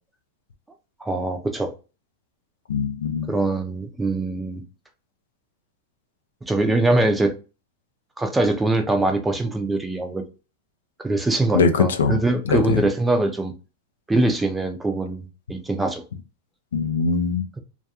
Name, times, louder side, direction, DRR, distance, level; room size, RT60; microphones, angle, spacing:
voice 1, 1.0-1.7 3.3-4.6 6.5-7.3 8.2-10.2 11.0-13.5 14.1-16.0, right 2 dB, 10° right, 0.5 m, -23 dB
voice 2, 2.7-3.3 11.5-12.9 16.7-17.4, left 5 dB, 85° left, 0.4 m, -22 dB
2.3 x 2.3 x 2.8 m
hypercardioid pair, 115°, 0 cm